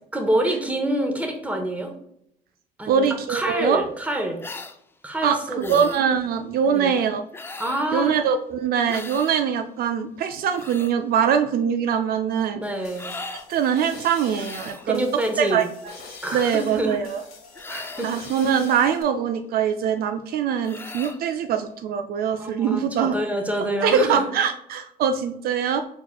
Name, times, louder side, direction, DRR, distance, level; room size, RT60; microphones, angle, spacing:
voice 1, 0.1-1.9 2.8-4.4 5.0-5.8 6.6-7.1 7.6-8.2 12.5-13.1 14.9-15.7 16.2-17.0 17.7-18.1 22.4-24.3, right 1 dB, 10° right, 3 dB, 0.9 m, -27 dB
voice 2, 2.9-3.8 5.2-7.2 7.9-12.6 13.5-15.0 15.4-15.6 16.3-17.2 18.0-23.1 23.8-25.8, right 7 dB, 65° right, 7 dB, 0.4 m, -23 dB
sound 1, 4.4-4.8 5.6-6.0 7.3-7.9 8.9-9.3 10.3-10.9 12.9-13.5 14.3-14.9 17.5-18.2 20.6-21.2, left 3 dB, 15° left, 0.3 m, -37 dB
sound 2, 12.6-19.0, left 4 dB, 65° left, 1.3 m, -44 dB
4.4 x 4.2 x 2.2 m, 0.73 s
cardioid pair, 110°, 17 cm